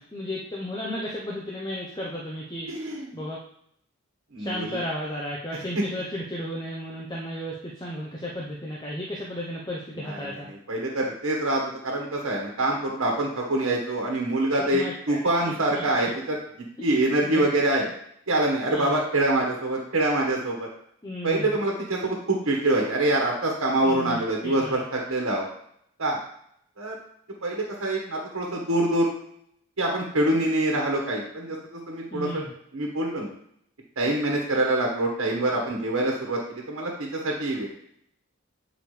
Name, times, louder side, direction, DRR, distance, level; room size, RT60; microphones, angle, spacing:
voice 1, 0.1-2.7 3.1-3.4 4.4-10.5 14.6-16.1 16.8-16.9 17.2-17.5 17.8-17.9 18.7-18.9 21.0-21.6 23.8-24.2 24.4-24.8 32.1-32.5, equal, 20° left, -4 dB, 0.7 m, -34 dB
voice 2, 2.7-3.2 4.3-4.8 10.0-10.4 10.7-16.4 16.8-17.8 18.3-20.7 21.2-25.4 26.0-26.2 26.8-27.0 27.4-29.1 29.8-32.3 32.7-33.3 34.0-37.7, right 1 dB, 90° right, -1 dB, 1.4 m, -25 dB
8.3 x 4.9 x 3.3 m, 0.70 s
head